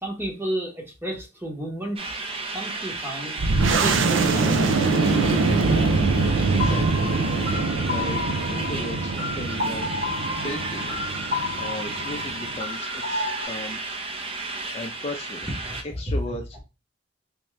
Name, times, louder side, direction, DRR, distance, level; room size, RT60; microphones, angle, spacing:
voice 1, 0.0-2.0 2.5-3.4 3.7-4.8 15.6-15.8 16.1-16.4, right 1 dB, 10° right, 0.9 m, -31 dB
sound 1, 2.0-15.8, right 3 dB, 30° right, 0.6 m, -33 dB
sound 2, 3.4-12.6, right 3 dB, 90° right, 0.5 m, -24 dB
voice 2, 6.5-7.1 7.5-7.6 7.9-9.9 10.4-10.9 11.6-13.8 14.7-15.5 16.0-16.6, left 1 dB, 30° left, 0.5 m, -36 dB
sound 3, 6.6-13.5, left 3 dB, 60° right, 1.7 m, -32 dB
3.5 x 2.7 x 3.1 m
head